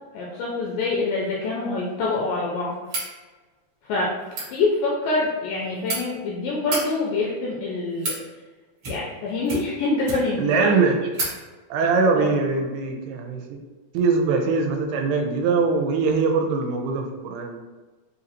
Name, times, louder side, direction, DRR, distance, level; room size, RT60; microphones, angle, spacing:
voice 1, 0.1-2.8 3.8-4.1 4.5-8.1 8.9-10.7 12.1-12.3, left 3 dB, 90° left, -3 dB, 2.0 m, -25 dB
sound 1, 2.8-3.1 4.2-4.5 5.4-6.0 6.6-6.8 7.6-8.2 8.8-9.2 9.4-10.4 10.7-10.8 11.1-11.3, right 2 dB, 60° right, 1.3 m, -30 dB
voice 2, 10.4-11.0 11.7-13.6 13.9-17.6, right 4 dB, 85° right, 3 dB, 2.5 m, -22 dB
5.9 x 2.6 x 2.8 m, 1.3 s
omnidirectional pair, 4.5 m